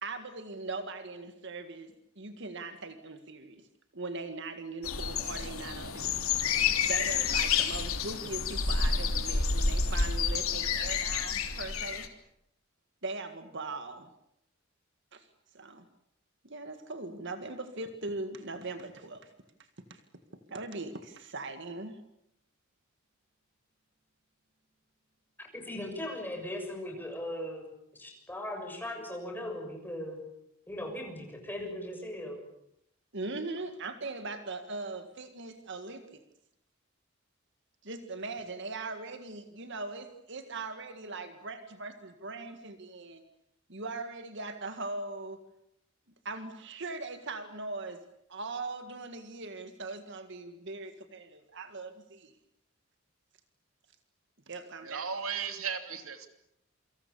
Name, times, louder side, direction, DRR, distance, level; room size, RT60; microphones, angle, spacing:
voice 1, 0.0-3.7 3.9-6.2 6.8-12.1 13.0-14.1 15.1-15.3 15.5-15.9 16.4-19.3 19.9-20.0 20.5-22.0 33.1-36.2 37.8-43.2 43.7-45.4 46.3-48.0 48.3-52.4 54.5-55.1, right 3 dB, 60° right, 8 dB, 1.9 m, -40 dB
sound 1, 4.8-12.1, left 5 dB, 90° left, 3.2 m, -29 dB
voice 2, 25.4-27.7 28.0-30.2 30.7-32.4, left 1 dB, 10° left, 2 dB, 6.8 m, -38 dB
voice 3, 54.8-56.3, right 6 dB, 85° right, 7 dB, 3.0 m, -35 dB
28.0 x 25.5 x 7.0 m, 0.77 s
head